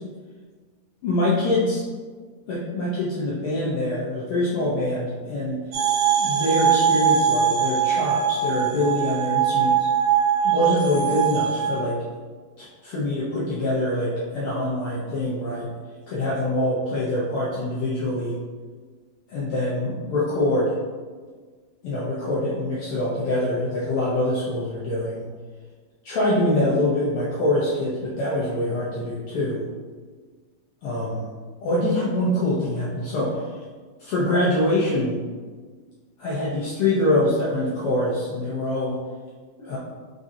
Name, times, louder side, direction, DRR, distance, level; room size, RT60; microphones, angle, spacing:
voice 1, 1.0-1.8 2.5-5.6 6.2-9.9 10.4-12.0 12.6-15.7 16.1-18.4 19.3-20.8 21.8-25.2 26.0-29.6 30.8-31.3 31.6-33.5 34.0-35.2 36.2-39.0 39.6-39.8, left 1 dB, 70° left, -7 dB, 1.3 m, -24 dB
sound 1, 5.7-11.8, right 8 dB, 85° right, 2.0 m, -21 dB
4.9 x 3.8 x 2.7 m, 1.5 s
omnidirectional pair, 3.3 m